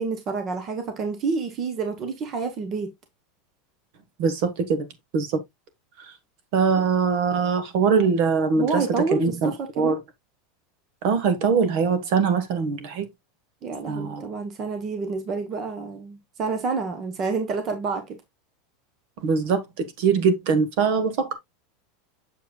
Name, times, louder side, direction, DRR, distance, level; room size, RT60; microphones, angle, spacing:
voice 1, 0.0-2.9 6.8-6.9 8.6-10.0 13.6-18.2, right 4 dB, 25° right, 1.1 m, -28 dB
voice 2, 4.2-4.9 5.1-5.4 6.5-10.0 11.0-13.1 13.9-14.2 19.2-21.3, right 5 dB, 45° right, 1.3 m, -22 dB
7.5 x 6.8 x 2.3 m
supercardioid pair, 175°, 0 cm